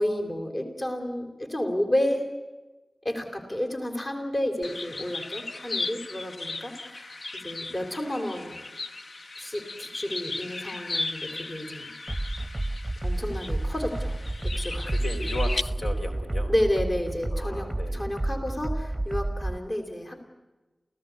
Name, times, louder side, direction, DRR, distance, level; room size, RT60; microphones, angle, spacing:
voice 1, 0.0-2.3 3.0-8.6 9.4-11.9 13.0-14.9 16.5-20.2, left 1 dB, 35° left, 5 dB, 3.5 m, -31 dB
sound 1, 4.6-15.6, left 3 dB, 55° left, 0.7 m, -36 dB
sound 2, 12.1-19.6, right 1 dB, 15° right, 0.9 m, -30 dB
voice 2, 14.7-16.5 17.3-18.2, left 1 dB, 75° left, 4 dB, 4.1 m, -36 dB
28.5 x 16.5 x 9.4 m, 1.2 s
wide cardioid pair, 90°, 0 cm